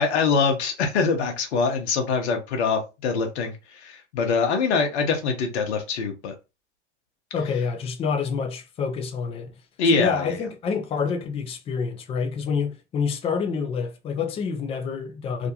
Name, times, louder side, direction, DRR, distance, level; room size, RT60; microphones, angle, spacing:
voice 1, 0.0-6.3 9.8-10.4, left 4 dB, 65° left, 0.9 m, -24 dB
voice 2, 7.3-9.5 9.9-15.5, left 5 dB, 15° left, 0.4 m, -27 dB
2.5 x 2.2 x 2.8 m
hypercardioid pair, 100°, 37 cm